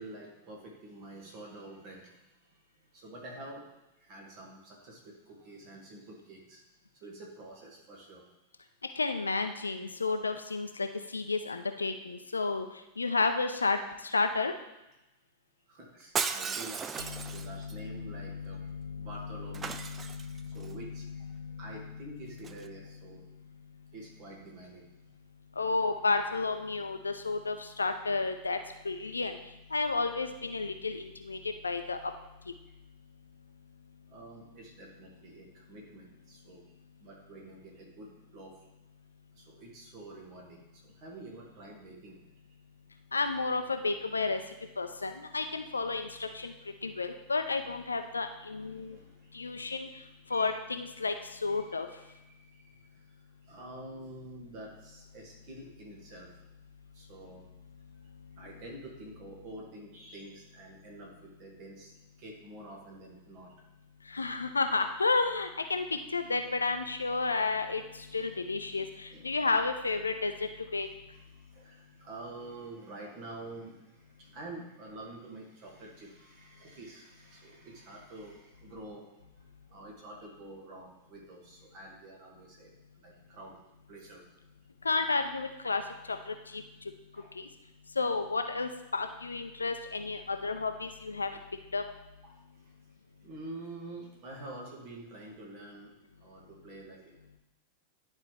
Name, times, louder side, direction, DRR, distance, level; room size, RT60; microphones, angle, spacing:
voice 1, 0.0-2.2 2.9-3.7 4.0-6.6 7.0-8.2 15.7-16.8 17.3-18.7 19.0-19.7 20.5-21.3 21.6-23.2 23.9-24.8 28.2-28.3 34.1-36.6 37.0-38.5 39.4-40.6 40.8-42.2 48.9-49.2 50.3-50.6 51.5-52.1 52.4-52.8 53.5-56.3 56.9-57.5 58.4-61.9 62.2-63.5 68.1-68.4 69.1-69.4 70.8-71.3 71.5-79.1 79.7-82.7 83.0-83.6 83.9-84.2 87.1-87.3 92.2-92.3 93.2-95.9 96.2-97.0, right 2 dB, 40° right, -1 dB, 2.0 m, -47 dB
voice 2, 9.0-12.7 13.0-13.8 14.1-14.5 17.0-19.1 19.6-21.8 25.6-28.6 28.8-29.4 29.7-32.0 43.1-44.4 44.8-46.5 46.8-49.0 49.3-49.9 50.3-51.1 51.4-51.9 64.1-67.8 68.1-70.3 70.7-70.9 84.8-85.8 86.1-86.6 87.4-87.5 88.0-91.3 91.7-91.8, left 3 dB, 75° left, 7 dB, 0.5 m, -32 dB
Shatter, 16.1-17.7 19.5-20.6 22.4-22.7, right 5 dB, 20° right, 0.4 m, -35 dB
11.0 x 4.1 x 3.3 m, 0.95 s
figure-of-eight pair, 90°, 0 cm